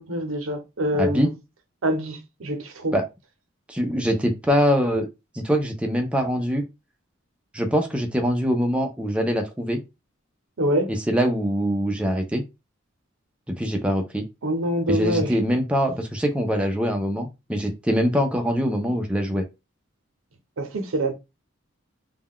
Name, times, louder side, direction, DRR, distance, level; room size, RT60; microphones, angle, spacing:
voice 1, 0.0-1.3 1.8-2.9 10.6-10.9 14.4-15.4 20.6-21.1, equal, 85° right, 0.7 m, -25 dB
voice 2, 0.9-1.3 2.9-3.0 3.7-5.1 5.3-6.6 7.5-9.8 10.9-12.4 13.6-14.2 14.9-19.4, equal, 5° right, 0.4 m, -23 dB
2.2 x 2.2 x 3.5 m
head